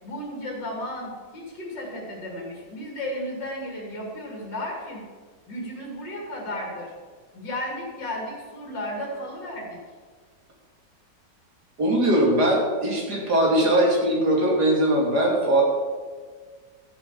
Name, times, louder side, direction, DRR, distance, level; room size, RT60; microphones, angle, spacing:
voice 1, 0.0-5.0 5.5-6.9 7.3-9.8, left 1 dB, 80° left, -1 dB, 3.2 m, -34 dB
voice 2, 11.8-15.6, right 1 dB, 65° right, -1 dB, 3.5 m, -20 dB
13.5 x 7.5 x 7.2 m, 1.6 s
omnidirectional pair, 1.9 m